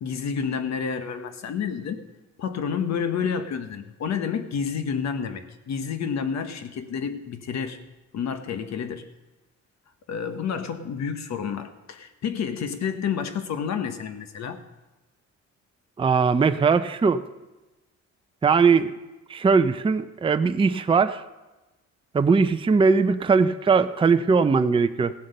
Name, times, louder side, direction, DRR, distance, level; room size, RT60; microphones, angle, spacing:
voice 1, 0.0-2.1 2.4-7.8 8.1-9.1 10.1-14.6, left 6 dB, 65° left, 9 dB, 1.2 m, -29 dB
voice 2, 16.0-17.2 18.4-18.9 19.3-21.2 22.1-25.1, right 5 dB, 15° right, 9 dB, 0.5 m, -20 dB
16.5 x 7.7 x 5.4 m, 1.1 s
cardioid pair, 90°, 30 cm